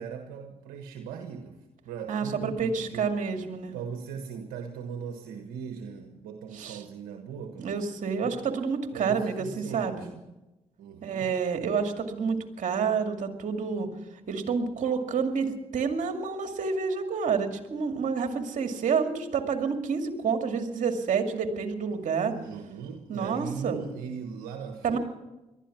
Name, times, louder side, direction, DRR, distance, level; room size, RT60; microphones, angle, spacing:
voice 1, 0.0-1.6 1.8-3.1 3.7-7.7 8.0-8.3 8.9-10.2 10.8-11.3 21.9-22.0 22.3-25.0, right 6 dB, 80° right, 5 dB, 1.3 m, -39 dB
voice 2, 2.1-3.8 6.5-6.8 7.6-10.1 11.0-13.9 14.3-22.3 23.1-23.8 24.8-25.0, right 5 dB, 60° right, 5 dB, 2.3 m, -29 dB
19.0 x 12.5 x 6.0 m, 1.0 s
supercardioid pair, 55°, 15 cm